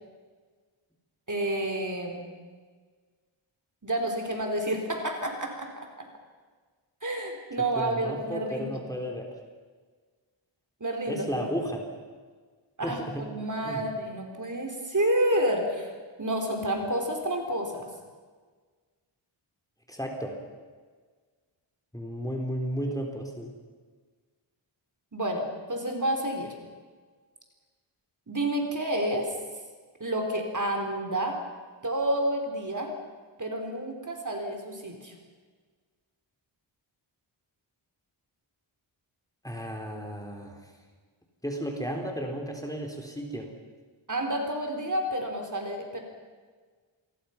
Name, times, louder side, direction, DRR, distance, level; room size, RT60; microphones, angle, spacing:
voice 1, 1.3-2.2 3.8-6.1 7.0-8.8 10.8-11.4 12.8-15.9 16.2-17.9 25.1-26.5 28.3-29.3 30.0-31.4 31.8-32.9 33.4-35.1 44.1-46.0, right 1 dB, 35° right, 3 dB, 3.7 m, -29 dB
voice 2, 7.8-9.3 11.1-11.8 12.8-13.2 13.6-13.8 19.9-20.4 21.9-23.5 39.4-40.6 41.4-43.5, equal, 5° left, 2 dB, 3.5 m, -33 dB
28.0 x 21.5 x 5.8 m, 1.5 s
wide cardioid pair, 105°, 50 cm